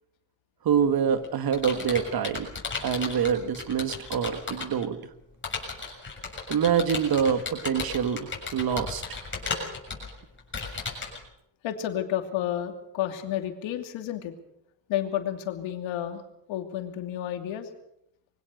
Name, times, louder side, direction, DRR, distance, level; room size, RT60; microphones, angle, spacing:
voice 1, 0.7-2.5 2.8-5.0 6.5-9.0, right 7 dB, 50° right, 10 dB, 1.9 m, -26 dB
Computer keyboard, 0.8-4.8 5.4-11.2, left 4 dB, 25° left, 6.9 m, -35 dB
voice 2, 11.6-14.3 14.9-16.2 16.5-17.7, left 11 dB, 80° left, 6 dB, 2.9 m, -31 dB
23.0 x 17.5 x 6.7 m, 0.78 s
cardioid pair, 105°, 45 cm